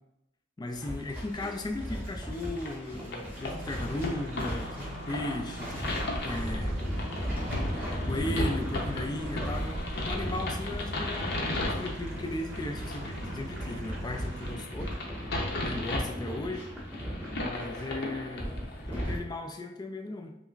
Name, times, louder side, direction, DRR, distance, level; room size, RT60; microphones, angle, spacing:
voice 1, 0.6-6.8 8.1-14.9 15.6-16.7 17.4-18.5 18.9-20.4, left 2 dB, 20° left, 4 dB, 0.3 m, -36 dB
sound 1, 0.7-19.2, equal, 10° right, 1.4 m, -37 dB
sound 2, 2.3-19.0, left 2 dB, 60° left, 0.6 m, -37 dB
sound 3, 3.4-14.6, right 2 dB, 65° right, 0.5 m, -42 dB
5.4 x 2.0 x 2.3 m, 0.86 s
head